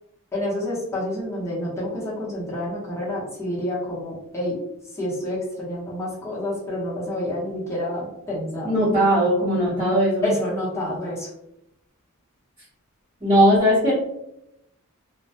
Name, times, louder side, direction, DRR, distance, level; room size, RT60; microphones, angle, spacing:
voice 1, 0.3-4.5 5.0-8.8 10.2-11.3, left 1 dB, 15° left, -7 dB, 0.8 m, -28 dB
voice 2, 8.6-10.3 13.2-13.9, equal, 30° right, -11 dB, 0.8 m, -18 dB
2.2 x 2.1 x 2.7 m, 0.82 s
head